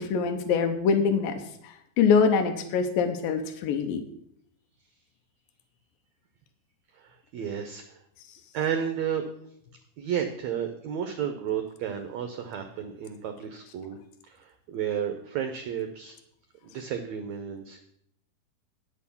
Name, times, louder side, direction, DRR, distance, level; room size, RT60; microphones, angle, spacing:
voice 1, 0.0-1.3 1.6-4.0, left 5 dB, 85° left, 6 dB, 2.7 m, -24 dB
voice 2, 6.9-8.0 8.5-9.2 10.0-14.0 14.3-16.2 16.6-17.8, right 8 dB, 70° right, 6 dB, 1.7 m, -32 dB
9.3 x 6.6 x 7.0 m, 0.72 s
omnidirectional pair, 4.0 m